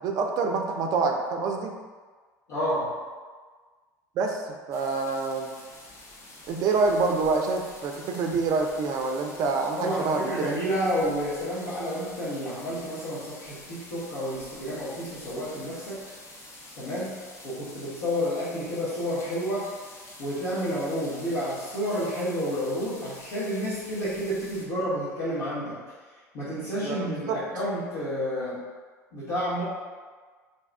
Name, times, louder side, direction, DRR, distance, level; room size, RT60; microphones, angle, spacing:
voice 1, 0.0-1.7 4.2-4.4 4.7-5.5 6.5-10.5 26.8-27.4, right 4 dB, 45° right, 3 dB, 0.4 m, -26 dB
voice 2, 2.5-2.9 9.8-16.0 16.8-17.1 17.4-19.7 20.2-25.8 26.3-28.6 29.1-29.6, equal, 60° left, -12 dB, 1.0 m, -30 dB
sound 1, 4.7-24.7, left 2 dB, 30° left, 0.6 m, -47 dB
2.7 x 2.3 x 3.3 m, 1.5 s
figure-of-eight pair, 70°, 9 cm